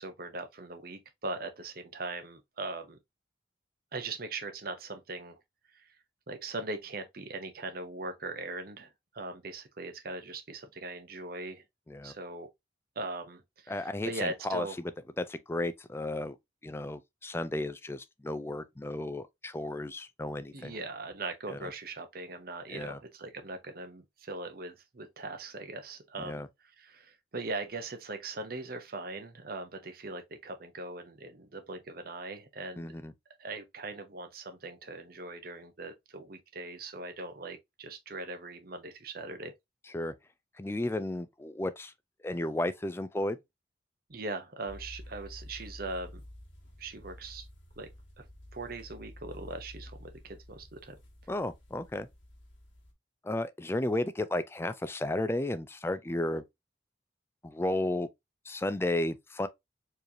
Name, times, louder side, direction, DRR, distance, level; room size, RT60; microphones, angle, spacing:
voice 1, 0.0-3.0 3.9-5.4 5.7-5.9 6.3-11.6 12.0-12.5 13.0-14.8 20.5-26.4 26.8-32.9 33.4-39.5 44.1-46.2 46.8-47.5 47.8-47.9 48.2-48.3 48.5-51.0, right 2 dB, 50° right, 0.8 m, -40 dB
voice 2, 13.7-14.9 15.2-16.4 16.6-20.8 21.5-21.7 22.7-23.0 26.2-26.5 32.8-33.1 39.9-40.1 40.6-41.9 42.2-43.4 51.3-52.1 53.2-56.4 57.4-58.1 58.4-59.5, left 1 dB, 10° left, 0.3 m, -33 dB
sound 1, 44.7-52.9, left 1 dB, 75° left, 1.8 m, -50 dB
4.7 x 3.2 x 2.7 m
head